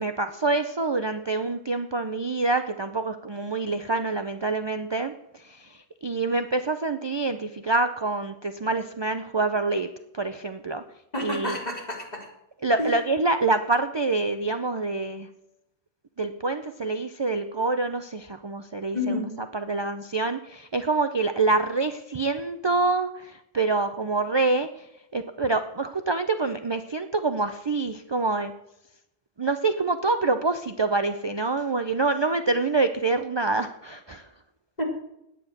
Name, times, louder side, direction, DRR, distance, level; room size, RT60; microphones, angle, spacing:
voice 1, 0.0-9.9 10.1-10.8 11.2-11.6 12.6-15.3 16.2-19.2 19.5-24.9 25.1-28.5 29.4-34.3, right 3 dB, 40° right, 8 dB, 0.3 m, -26 dB
voice 2, 11.1-12.3 12.8-12.9 18.9-19.3 34.8-34.9, left 2 dB, 30° left, -2 dB, 3.4 m, -29 dB
10.5 x 9.3 x 6.6 m, 0.83 s
omnidirectional pair, 1.3 m